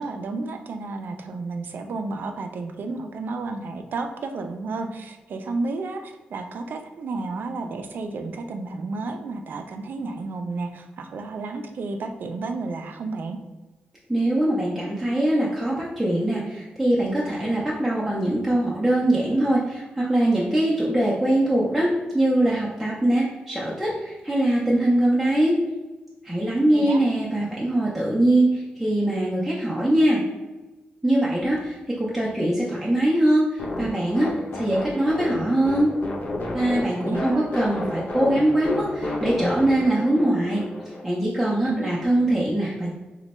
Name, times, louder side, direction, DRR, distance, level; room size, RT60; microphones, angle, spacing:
voice 1, 0.0-13.4 26.7-27.0 37.0-37.5 41.7-41.9, right 3 dB, 70° right, 7 dB, 0.4 m, -32 dB
voice 2, 14.1-25.5 26.2-30.2 31.0-35.9 36.5-40.6 41.0-43.0, right 1 dB, 5° right, -7 dB, 0.5 m, -22 dB
sound 1, 33.6-41.0, left 1 dB, 55° left, 0.5 m, -31 dB
3.1 x 2.2 x 4.1 m, 1.2 s
wide cardioid pair, 130°, 3 cm